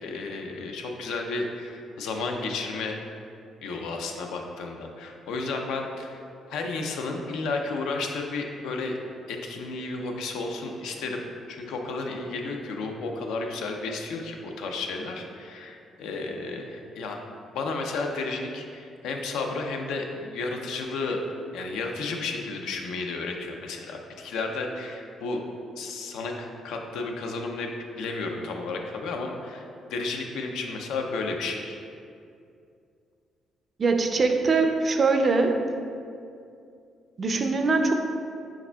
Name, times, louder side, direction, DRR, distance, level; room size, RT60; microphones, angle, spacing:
voice 1, 0.0-3.0 3.6-6.2 6.5-9.0 9.3-11.2 11.5-17.2 17.5-21.2 21.5-25.4 25.8-27.7 28.0-29.6 29.9-31.8, left 3 dB, 90° left, 2 dB, 0.4 m, -32 dB
voice 2, 33.8-35.6 37.2-37.9, right 3 dB, 40° right, 5 dB, 0.4 m, -22 dB
4.7 x 4.3 x 2.2 m, 2.4 s
cardioid pair, 90°, 0 cm